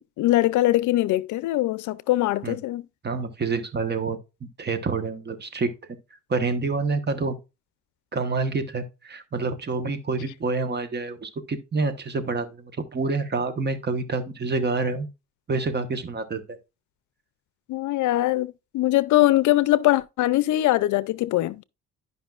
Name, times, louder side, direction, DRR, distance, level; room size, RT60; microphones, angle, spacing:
voice 1, 0.0-2.8 17.7-21.6, left 16 dB, 75° left, 0.5 m, -22 dB
voice 2, 3.0-4.2 4.6-5.7 6.3-7.4 8.1-15.1 15.5-16.4, right 3 dB, 35° right, 1.2 m, -27 dB
11.5 x 5.4 x 2.4 m
cardioid pair, 90°, 30 cm